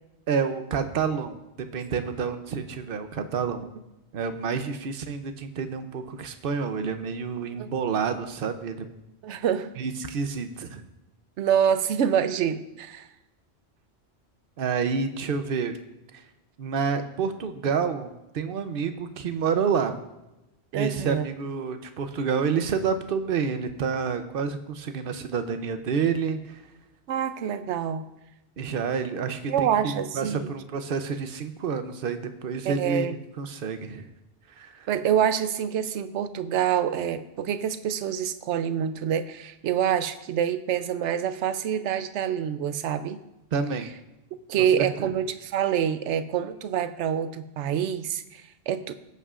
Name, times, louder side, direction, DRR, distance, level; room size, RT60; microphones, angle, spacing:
voice 1, 0.3-3.7 4.1-8.9 9.8-10.8 14.6-15.7 16.1-16.2 16.6-19.9 20.7-26.6 28.6-34.1 34.6-34.9 43.5-43.9 44.8-45.1, right 6 dB, 55° right, 8 dB, 0.9 m, -29 dB
voice 2, 9.2-9.7 11.4-13.1 20.7-21.2 27.1-28.1 29.5-30.5 32.6-33.2 34.9-43.2 44.5-48.9, right 9 dB, 85° right, 11 dB, 0.9 m, -26 dB
16.5 x 8.1 x 2.5 m, 0.94 s
omnidirectional pair, 1.2 m